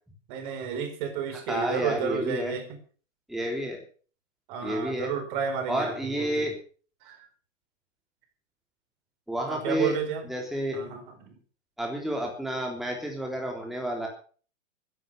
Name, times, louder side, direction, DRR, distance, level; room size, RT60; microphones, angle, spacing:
voice 1, 0.3-2.6 4.5-6.5 7.0-7.3 9.5-10.3 10.7-11.4, right 6 dB, 40° right, 7 dB, 4.7 m, -32 dB
voice 2, 1.5-2.5 3.3-3.8 4.6-5.1 5.7-6.5 9.3-9.9 10.3-10.8 11.8-14.1, right 1 dB, ahead, 1 dB, 3.5 m, -30 dB
15.5 x 11.0 x 6.7 m, 0.41 s
figure-of-eight pair, 110°, 39 cm